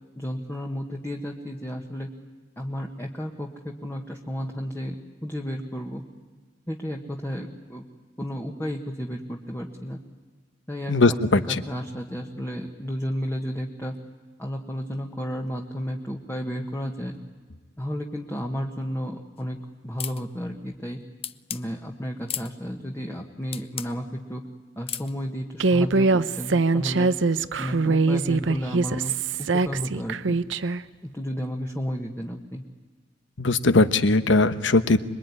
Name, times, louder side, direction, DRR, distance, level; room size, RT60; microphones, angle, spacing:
voice 1, 0.2-2.1 2.6-6.0 6.7-7.8 8.2-10.0 10.7-13.9 14.4-17.2 17.8-19.6 19.8-21.0 21.5-24.4 24.7-27.1 27.6-29.1 29.4-30.4 31.0-32.6, equal, 15° left, 1 dB, 1.5 m, -32 dB
voice 2, 10.9-11.6 33.4-35.0, left 2 dB, 70° left, 12 dB, 1.2 m, -20 dB
sound 1, 20.0-20.2 21.2-21.6 22.3-22.5 23.5-23.9 24.9-25.1, left 9 dB, 30° left, 0.7 m, -33 dB
Human voice, 25.6-30.8, right 3 dB, 75° right, 0.7 m, -23 dB
26.0 x 22.0 x 9.8 m, 1.4 s
head